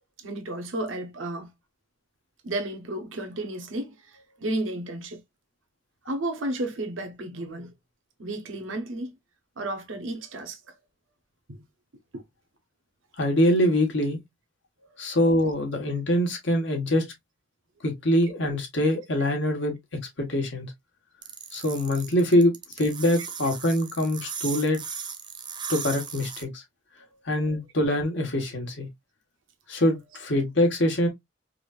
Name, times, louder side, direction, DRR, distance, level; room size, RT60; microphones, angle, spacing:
voice 1, 0.2-1.5 2.4-5.2 6.1-7.7 8.2-9.1 9.6-10.7 11.5-11.6 12.1-12.2, right 1 dB, 90° right, 1.0 m, -33 dB
voice 2, 13.2-14.2 15.0-17.0 17.8-20.7 21.5-24.8 25.7-26.6 27.2-28.9 29.7-31.1, left 1 dB, 65° left, 1.4 m, -24 dB
sound 1, 21.2-26.4, right 6 dB, 25° right, 0.7 m, -37 dB
4.8 x 2.7 x 2.3 m
head